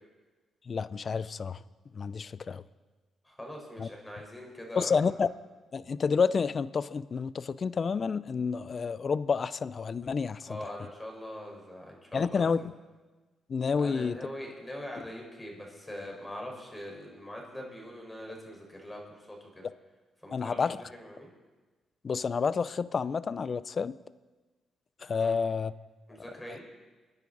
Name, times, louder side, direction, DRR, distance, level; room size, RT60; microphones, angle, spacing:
voice 1, 0.7-1.6 1.9-2.6 3.8-3.9 4.8-5.3 5.7-10.4 12.1-12.6 13.5-14.2 20.3-20.8 22.0-24.0 25.0-25.7, left 5 dB, 45° left, 17 dB, 0.5 m, -29 dB
voice 2, 3.2-5.0 10.4-12.5 13.8-19.6 20.2-21.3 25.2-25.3 26.1-26.6, left 1 dB, 15° left, 0 dB, 4.6 m, -42 dB
26.5 x 10.5 x 4.0 m, 1.3 s
cardioid pair, 75°, 0 cm